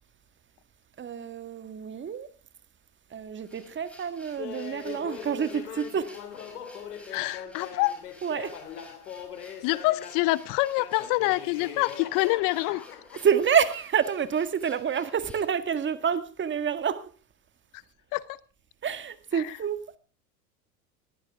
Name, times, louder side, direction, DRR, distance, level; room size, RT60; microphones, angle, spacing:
voice 1, 1.0-2.3 3.1-6.1 8.2-8.5 13.1-17.1 18.8-20.0, right 7 dB, 25° right, 1.7 m, -28 dB
sound 1, 3.3-15.5, equal, 5° left, 6.0 m, -54 dB
Laughter, 4.4-10.3 10.8-13.4, left 8 dB, 85° left, 2.9 m, -41 dB
voice 2, 7.1-8.0 9.6-12.9 18.1-18.4 19.3-19.6, left 20 dB, 45° left, 0.7 m, -26 dB
20.5 x 15.5 x 3.6 m
hypercardioid pair, 105°, 45 cm